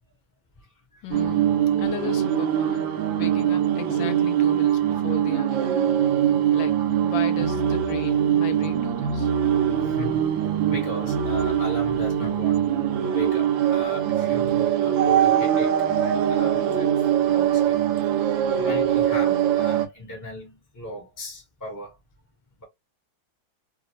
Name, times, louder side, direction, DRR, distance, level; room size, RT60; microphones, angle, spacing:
voice 1, 1.0-1.5 1.8-2.9 3.2-5.7 6.5-9.3, left 10 dB, 80° left, 1.3 m, -36 dB
sound 1, 1.1-19.9, right 10 dB, 80° right, 1.3 m, -22 dB
voice 2, 9.8-10.3 10.7-12.6 13.0-16.9 17.2-17.8 18.5-22.0, left 1 dB, 15° left, 0.9 m, -37 dB
3.4 x 2.0 x 2.6 m
omnidirectional pair, 2.0 m